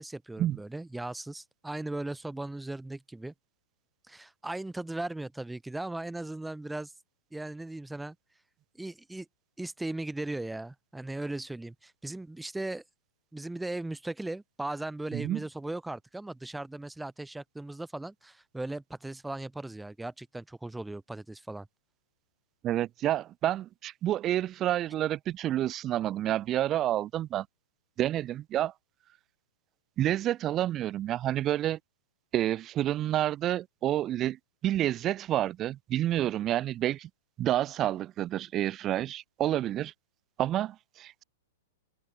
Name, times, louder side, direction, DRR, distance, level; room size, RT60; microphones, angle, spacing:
voice 1, 0.0-3.3 4.1-6.9 7.3-8.1 8.8-9.3 9.6-12.8 13.3-21.7, right 2 dB, 5° right, 6.3 m, -38 dB
voice 2, 22.6-27.5 28.0-28.7 30.0-31.8 32.3-34.4 34.6-37.1 37.4-39.9 40.4-41.2, right 12 dB, 30° right, 6.4 m, -29 dB
open air
hypercardioid pair, 115°, 0 cm